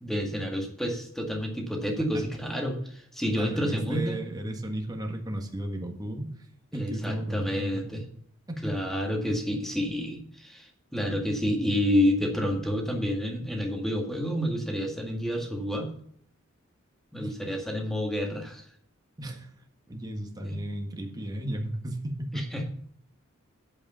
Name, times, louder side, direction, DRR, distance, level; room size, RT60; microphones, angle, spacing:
voice 1, 0.0-4.3 6.7-8.0 8.6-15.9 17.1-18.6 20.4-20.6 22.3-22.7, equal, ahead, 1 dB, 1.9 m, -29 dB
voice 2, 3.3-6.3 6.7-8.0 8.5-8.7 17.2-17.4 19.2-19.5 19.9-22.5, right 1 dB, 20° right, 2 dB, 1.6 m, -34 dB
8.7 x 8.3 x 5.6 m, 0.64 s
head